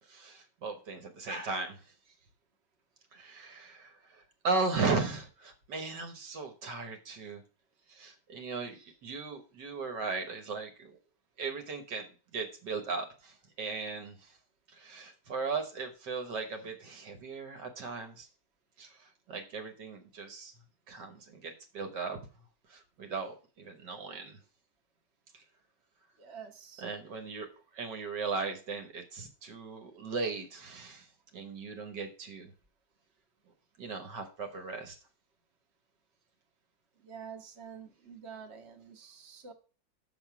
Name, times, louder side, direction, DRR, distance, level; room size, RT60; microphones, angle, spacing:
voice 1, 0.1-1.8 3.1-7.4 7.9-11.0 11.4-12.1 12.3-14.2 14.8-18.3 18.8-20.5 20.9-22.2 22.7-24.4 26.8-27.5 27.7-31.1 31.3-32.5 33.8-35.0, right 4 dB, 60° right, 5 dB, 1.7 m, -37 dB
voice 2, 26.2-26.9 37.0-39.5, right 6 dB, 35° right, 3 dB, 1.3 m, -47 dB
6.3 x 6.1 x 5.9 m, 0.35 s
omnidirectional pair, 2.2 m